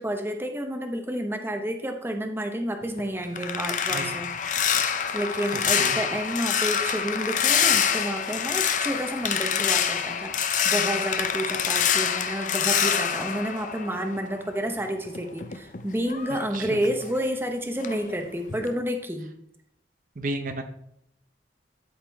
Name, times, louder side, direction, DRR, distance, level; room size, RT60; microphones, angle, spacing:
voice 1, 0.0-4.3 4.7-19.3, equal, 10° right, 4 dB, 0.9 m, -30 dB
sound 1, 2.8-14.5 14.8-17.5 17.8-18.1 18.5-18.7, left 8 dB, 45° left, 0.6 m, -26 dB
voice 2, 5.5-6.0 16.5-16.9 20.2-20.6, right 2 dB, 45° right, 6 dB, 0.6 m, -33 dB
13.0 x 5.9 x 3.5 m, 0.73 s
head